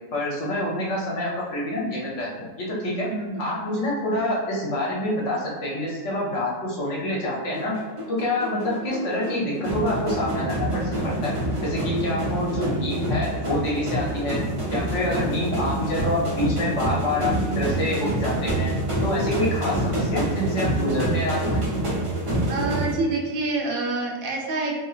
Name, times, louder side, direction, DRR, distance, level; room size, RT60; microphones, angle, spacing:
voice 1, 0.1-2.3 2.6-3.1 3.4-7.7 8.1-11.3 11.6-14.4 14.7-18.7 19.0-21.6, left 1 dB, 60° left, -4 dB, 1.0 m, -27 dB
voice 2, 3.0-3.5 22.5-24.8, right 3 dB, 80° right, -1 dB, 1.1 m, -27 dB
sound 1, 7.5-22.9, right 1 dB, 45° right, 0.4 m, -26 dB
2.9 x 2.8 x 2.4 m, 1.4 s
omnidirectional pair, 1.5 m